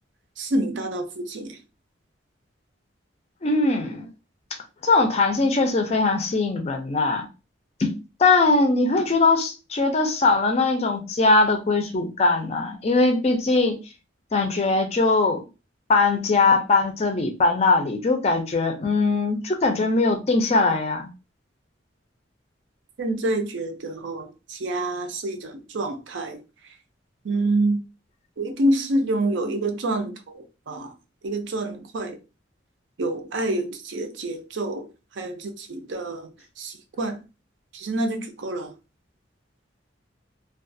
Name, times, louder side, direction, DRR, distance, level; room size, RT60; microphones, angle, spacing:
voice 1, 0.4-1.6 23.0-26.4 27.2-27.8 28.4-30.9 31.2-32.2 33.0-34.9 35.1-36.3 36.6-37.2 37.7-38.7, right 1 dB, 70° right, 0.5 m, -27 dB
voice 2, 3.4-4.1 4.8-7.3 7.8-13.8 14.3-15.4 15.9-21.1, left 3 dB, 35° left, 0.4 m, -21 dB
2.4 x 2.3 x 2.6 m
head